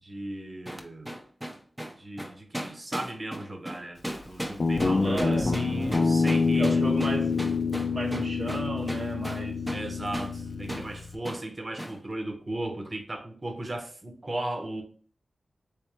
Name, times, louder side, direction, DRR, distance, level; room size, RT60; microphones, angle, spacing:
voice 1, 0.0-1.1 2.0-7.0 9.7-14.8, right 1 dB, 45° right, 4 dB, 0.9 m, -36 dB
sound 1, 0.7-9.9 10.1-10.3 10.7-10.9 11.2-11.4 11.8-12.0, equal, 10° right, 0.6 m, -36 dB
Guitar, 4.6-11.2, left 4 dB, 65° left, 0.5 m, -27 dB
voice 2, 5.0-5.5 6.5-7.4 7.9-9.6, right 2 dB, 65° right, -1 dB, 0.6 m, -33 dB
3.4 x 3.1 x 3.0 m, 0.42 s
cardioid pair, 45°, 0 cm